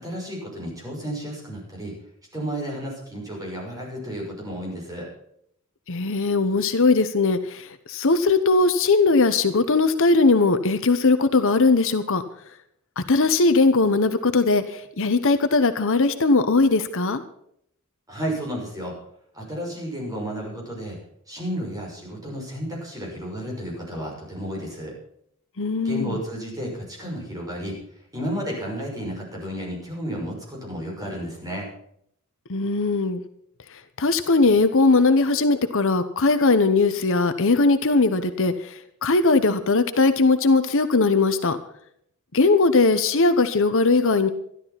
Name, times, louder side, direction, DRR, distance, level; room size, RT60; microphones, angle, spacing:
voice 1, 0.0-1.9 2.3-5.1 18.1-19.0 19.3-21.0 21.3-24.9 25.8-27.8 28.1-31.7, equal, 15° right, -2 dB, 6.1 m, -32 dB
voice 2, 5.9-12.2 13.0-17.2 25.6-26.2 32.5-33.2 34.0-41.6 42.3-44.3, left 3 dB, 65° left, 10 dB, 1.0 m, -19 dB
13.5 x 12.0 x 5.9 m, 0.70 s
head